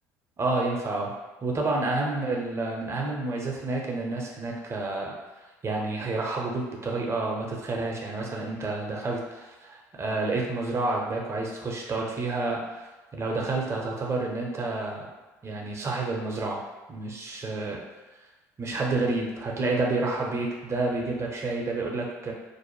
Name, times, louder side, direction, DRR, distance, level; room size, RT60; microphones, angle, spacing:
voice 1, 0.4-1.1 1.4-5.1 5.6-12.9 13.1-15.1 15.4-16.6 16.9-17.8 18.6-22.3, right 2 dB, 30° right, -1 dB, 0.7 m, -29 dB
2.6 x 2.1 x 3.0 m, 1.2 s
hypercardioid pair, 65°, 9 cm